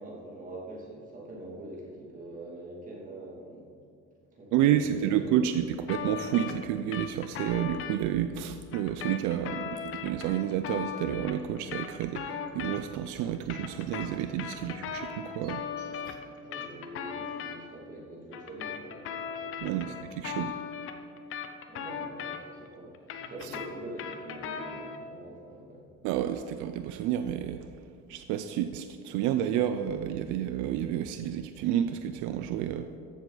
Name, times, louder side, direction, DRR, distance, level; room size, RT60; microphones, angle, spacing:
voice 1, 0.0-3.7 4.3-5.5 14.6-14.8 15.8-16.1 16.4-20.2 21.7-25.8, right 1 dB, 25° right, -4 dB, 2.4 m, -44 dB
voice 2, 4.5-15.6 19.6-19.9 20.2-20.5 26.0-27.6 28.1-32.9, right 10 dB, 75° right, 8 dB, 0.5 m, -30 dB
sound 1, 5.9-8.0 8.7-13.1 13.3-17.6 18.3-22.7 22.9-25.1, left 7 dB, 45° left, 0.8 m, -38 dB
sound 2, 11.4-16.7, right 6 dB, 55° right, 1.4 m, -57 dB
14.0 x 7.2 x 3.9 m, 2.4 s
cardioid pair, 160°, 30 cm